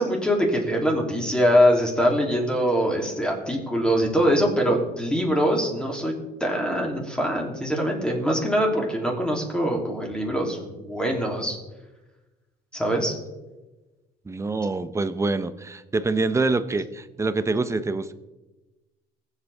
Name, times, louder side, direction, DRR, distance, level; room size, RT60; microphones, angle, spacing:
voice 1, 0.0-6.1 6.4-11.6 12.7-13.1, equal, 5° left, 0 dB, 3.0 m, -23 dB
voice 2, 14.3-18.1, right 3 dB, 15° right, 12 dB, 0.7 m, -25 dB
20.5 x 8.3 x 3.5 m, 1.1 s
cardioid pair, 110°, 17 cm